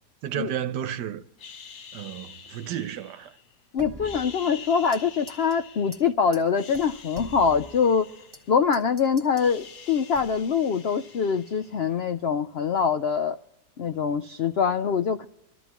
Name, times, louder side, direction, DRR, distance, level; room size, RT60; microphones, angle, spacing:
voice 1, 0.2-1.2 1.9-3.3, right 10 dB, 85° right, 1.4 m, -32 dB
sound 1, 1.4-3.5 3.9-6.1 6.5-8.9 9.1-12.0, left 6 dB, 50° left, 1.0 m, -46 dB
voice 2, 3.7-8.1 8.5-13.4 13.8-15.3, left 6 dB, 75° left, 0.5 m, -24 dB
sound 2, 3.8-5.0 5.3-5.6 5.9-6.0 6.3-6.4 6.7-8.4 8.7-9.5 10.1-10.6, right 2 dB, 15° right, 1.3 m, -44 dB
24.0 x 13.5 x 3.0 m
omnidirectional pair, 1.8 m